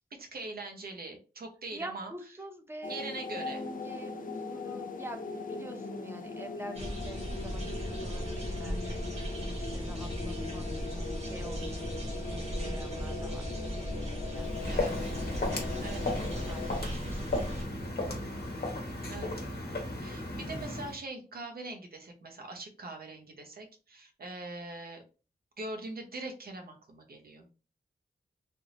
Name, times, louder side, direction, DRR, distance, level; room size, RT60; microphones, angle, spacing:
voice 1, 0.1-2.1 2.9-3.7 12.6-12.9 14.7-14.9 15.8-16.2 19.1-19.3 20.0-25.0 25.6-27.5, right 2 dB, 70° right, 3 dB, 0.8 m, -42 dB
voice 2, 1.7-3.0 3.3-9.0 9.3-10.6 11.2-13.4 14.2-14.5 15.4-15.8 16.1-17.5 17.8-18.0, right 1 dB, 15° right, 4 dB, 0.6 m, -46 dB
sound 1, 2.8-16.7, left 3 dB, 60° left, 0.5 m, -40 dB
sound 2, 6.8-17.6, equal, 40° right, 1.2 m, -37 dB
Walk footsteps, 14.4-21.0, left 2 dB, 75° left, 1.0 m, -35 dB
3.4 x 2.5 x 2.9 m, 0.34 s
wide cardioid pair, 120°, 16 cm